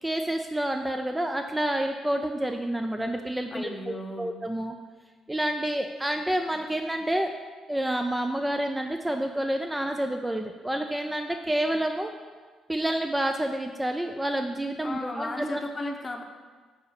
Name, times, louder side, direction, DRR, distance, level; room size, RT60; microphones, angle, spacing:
voice 1, 0.0-3.7 4.2-4.7 5.3-7.3 7.7-12.1 12.7-15.6, right 1 dB, 10° right, 5 dB, 0.3 m, -28 dB
voice 2, 3.5-4.4 14.8-16.2, left 2 dB, 30° left, 4 dB, 0.7 m, -35 dB
4.7 x 4.2 x 4.9 m, 1.4 s
cardioid pair, 90°, 0 cm